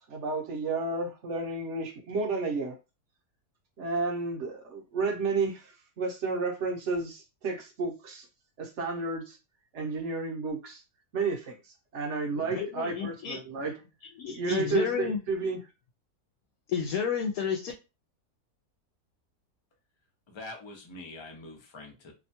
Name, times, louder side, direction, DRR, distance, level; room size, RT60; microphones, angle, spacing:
voice 1, 0.1-2.8 3.8-8.3 8.6-9.4 9.7-10.8 11.1-11.6 11.9-13.7 14.3-15.6, right 3 dB, 60° right, 0.9 m, -31 dB
voice 2, 12.5-13.4 14.2-15.2 16.7-17.7, left 7 dB, 75° left, 1.0 m, -31 dB
voice 3, 20.3-22.1, left 2 dB, 45° left, 0.3 m, -44 dB
2.8 x 2.2 x 2.7 m
omnidirectional pair, 1.6 m